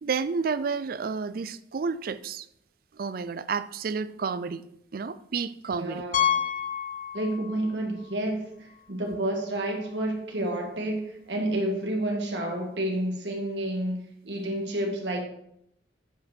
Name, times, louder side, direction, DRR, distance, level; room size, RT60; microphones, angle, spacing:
voice 1, 0.0-2.5 2.9-4.6 4.9-6.0 9.0-9.2, right 5 dB, 55° right, 15 dB, 0.4 m, -31 dB
voice 2, 5.8-6.4 7.1-15.2, right 1 dB, 80° right, 1 dB, 2.1 m, -30 dB
Piano, 6.1-7.7 8.0-8.2 8.7-8.8 9.1-9.2 11.3-11.4, left 9 dB, 45° left, 0.6 m, -28 dB
9.8 x 5.2 x 5.1 m, 0.74 s
head